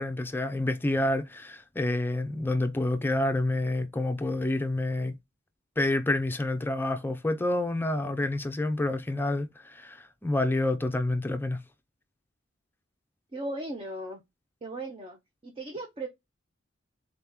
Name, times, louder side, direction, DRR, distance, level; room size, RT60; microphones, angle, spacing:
voice 1, 0.0-5.2 5.8-11.6, left 2 dB, 10° left, 0.5 m, -28 dB
voice 2, 13.3-14.2 14.6-15.2 15.4-16.1, right 2 dB, 30° right, 0.7 m, -36 dB
3.9 x 2.9 x 3.5 m
head